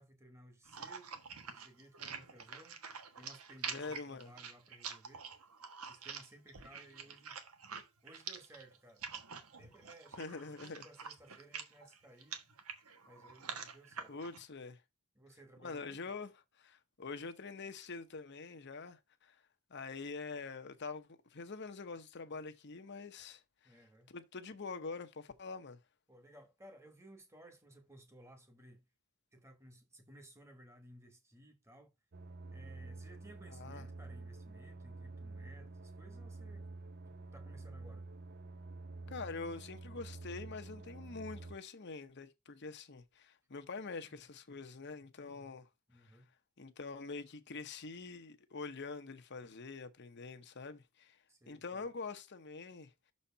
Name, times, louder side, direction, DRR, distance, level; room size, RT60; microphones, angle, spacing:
voice 1, 0.0-2.8 3.2-5.2 5.8-7.4 8.0-9.1 9.6-12.4 13.0-14.2 15.1-16.1 23.6-24.1 26.1-28.8 29.3-31.9 32.5-36.7 37.1-38.1 44.0-44.2 45.9-46.3 51.3-51.8, right 1 dB, 10° right, 1.2 m, -59 dB
sound 1, 0.7-14.4, right 6 dB, 80° right, 1.3 m, -47 dB
voice 2, 3.7-4.3 10.2-10.9 14.1-14.8 15.6-16.3 16.6-19.4 19.7-23.8 24.1-25.8 33.5-33.8 39.1-45.7 45.9-46.2 46.6-51.2 51.5-52.9, left 4 dB, 50° left, 0.8 m, -45 dB
sound 2, 32.1-41.6, right 3 dB, 45° right, 0.6 m, -48 dB
6.4 x 4.2 x 5.5 m
head